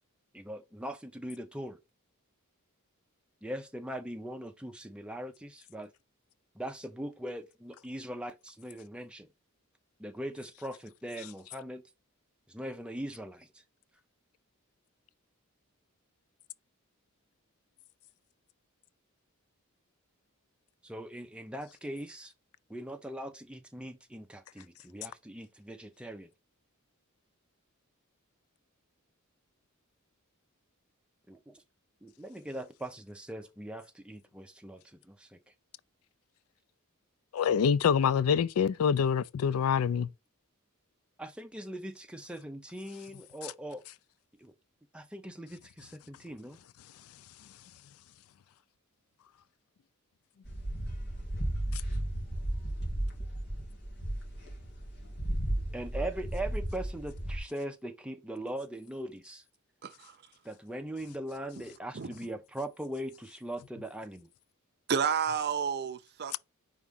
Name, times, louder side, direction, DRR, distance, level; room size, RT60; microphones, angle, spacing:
voice 1, 0.3-1.8 3.4-5.9 6.5-9.3 10.0-11.8 12.5-13.5 20.8-22.3 22.7-26.3 31.3-31.6 32.0-35.4 41.2-43.8 44.4-44.5 44.9-46.6 55.7-59.4 60.4-64.3, right 1 dB, 5° right, 0.6 m, -40 dB
voice 2, 37.3-40.1, left 7 dB, 70° left, 0.4 m, -26 dB
sound 1, 50.4-57.4, right 1 dB, 50° left, 2.2 m, -34 dB
voice 3, 59.8-60.2 61.9-62.1 64.9-66.4, right 6 dB, 45° right, 0.5 m, -31 dB
4.8 x 3.6 x 5.4 m
head